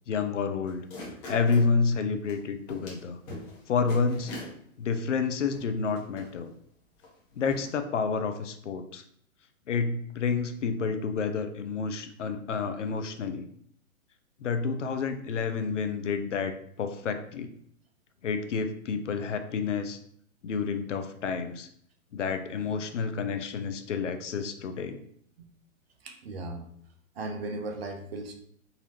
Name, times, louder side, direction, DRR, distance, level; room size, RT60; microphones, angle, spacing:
voice 1, 0.1-0.9 1.3-3.2 3.7-4.3 4.8-6.5 7.4-9.0 9.7-13.5 14.4-17.5 18.2-20.0 20.4-21.7 22.1-25.0, left 5 dB, 60° left, 8 dB, 0.5 m, -29 dB
sound 1, 0.7-1.7 2.3-2.4 2.7-3.0 3.3-3.6 3.9-4.5 5.2-5.3 5.5-6.3 7.0-7.1 7.4-7.7, left 1 dB, 30° left, 1.1 m, -41 dB
voice 2, 26.0-26.6 27.2-28.4, right 2 dB, 45° right, 4 dB, 0.7 m, -36 dB
3.9 x 2.7 x 2.9 m, 0.66 s
figure-of-eight pair, 115°, 41 cm